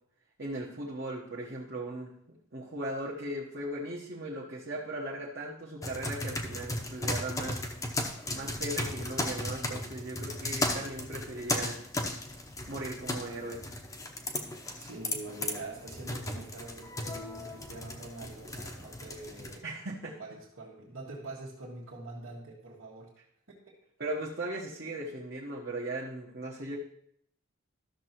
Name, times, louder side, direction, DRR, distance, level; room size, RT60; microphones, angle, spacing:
voice 1, 0.4-7.9 8.3-11.8 12.7-13.6 19.6-20.1 24.0-26.8, right 1 dB, 50° right, -5 dB, 1.2 m, -38 dB
sound 1, 5.8-19.6, left 1 dB, 15° left, 0.7 m, -36 dB
voice 2, 14.8-19.7 20.0-23.1 23.7-23.8, right 2 dB, 80° right, -8 dB, 1.7 m, -44 dB
13.0 x 6.7 x 3.0 m, 0.70 s
head